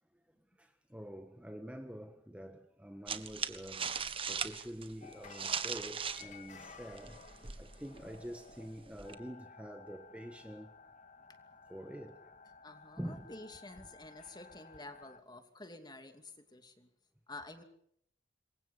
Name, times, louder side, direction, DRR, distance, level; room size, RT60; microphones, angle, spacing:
voice 1, 0.6-10.7 11.7-12.3 13.0-13.3, equal, 5° right, 1.5 m, -47 dB
sound 1, 3.1-6.3 6.6-9.1, right 6 dB, 30° right, 1.5 m, -39 dB
sound 2, 5.0-15.2, left 4 dB, 40° left, 2.1 m, -56 dB
voice 2, 12.6-16.9 17.3-17.6, left 2 dB, 25° left, 2.7 m, -50 dB
28.0 x 23.0 x 5.6 m
head